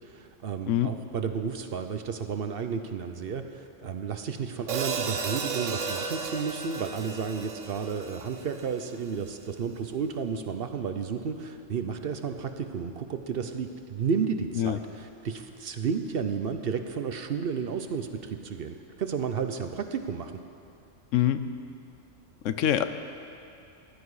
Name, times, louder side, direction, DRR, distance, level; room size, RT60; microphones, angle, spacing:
voice 1, 0.1-20.3, right 6 dB, 55° right, 7 dB, 0.8 m, -32 dB
Hi-hat, 4.7-9.0, right 5 dB, 85° right, 1.2 m, -34 dB
voice 2, 22.4-22.8, left 11 dB, 80° left, 10 dB, 1.0 m, -24 dB
15.0 x 11.5 x 4.8 m, 2.5 s
omnidirectional pair, 1.3 m